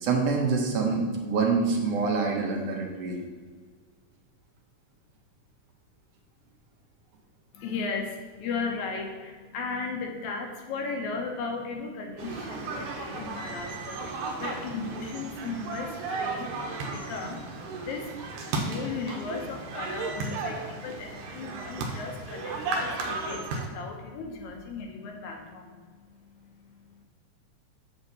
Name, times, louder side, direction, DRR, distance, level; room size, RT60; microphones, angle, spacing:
voice 1, 0.0-3.2, right 4 dB, 65° right, 0 dB, 1.7 m, -26 dB
voice 2, 7.5-27.0, left 4 dB, 75° left, 3 dB, 2.0 m, -36 dB
sound 1, 12.2-23.7, right 3 dB, 85° right, 2.3 m, -34 dB
7.7 x 6.8 x 2.8 m, 1.5 s
omnidirectional pair, 3.7 m